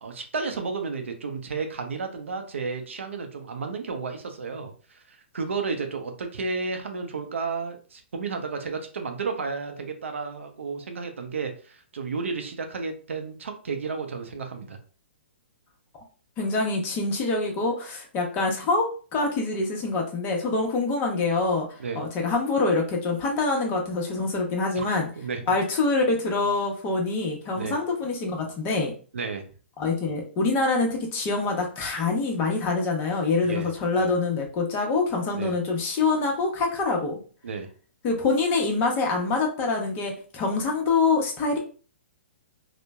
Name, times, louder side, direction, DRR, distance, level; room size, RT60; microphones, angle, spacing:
voice 1, 0.0-14.8 21.8-22.0 24.7-24.9 25.2-25.4 27.6-27.8 29.1-29.4 33.4-34.1 35.3-35.6 37.4-37.7, right 4 dB, 80° right, 5 dB, 0.5 m, -32 dB
voice 2, 16.4-21.7 21.9-25.1 25.5-28.9 29.8-37.2 38.0-41.6, left 3 dB, 30° left, 1 dB, 0.8 m, -25 dB
3.0 x 2.1 x 2.2 m, 0.39 s
hypercardioid pair, 125°, 7 cm